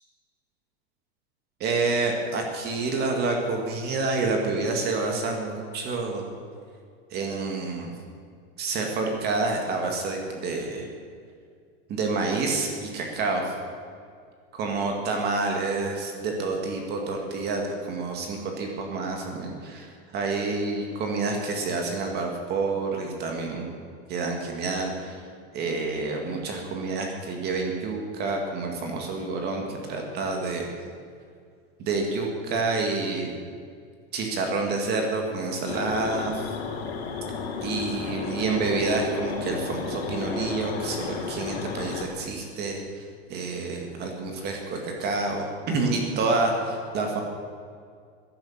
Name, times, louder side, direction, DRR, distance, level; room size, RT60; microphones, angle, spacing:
voice 1, 1.6-6.2 7.1-7.9 8.6-10.9 11.9-13.5 14.5-23.7 24.1-25.2 25.5-30.7 31.8-33.3 34.1-36.5 37.6-43.0 43.3-47.2, right 3 dB, 35° right, 2 dB, 2.1 m, -28 dB
sound 1, 35.7-42.1, left 5 dB, 85° left, 2.7 m, -33 dB
14.5 x 11.0 x 7.2 m, 2.2 s
supercardioid pair, 155°, 30 cm